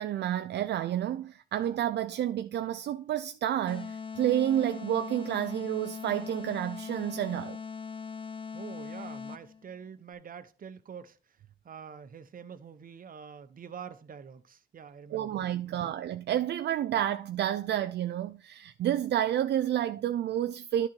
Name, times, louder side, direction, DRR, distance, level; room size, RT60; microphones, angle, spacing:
voice 1, 0.0-7.6 15.1-20.9, right 11 dB, 70° right, 0.4 m, -30 dB
sound 1, 3.7-9.6, left 5 dB, 30° left, 0.7 m, -40 dB
voice 2, 8.5-11.2 11.6-15.9, right 7 dB, 50° right, 0.8 m, -46 dB
11.0 x 3.8 x 4.4 m
cardioid pair, 75°, 18 cm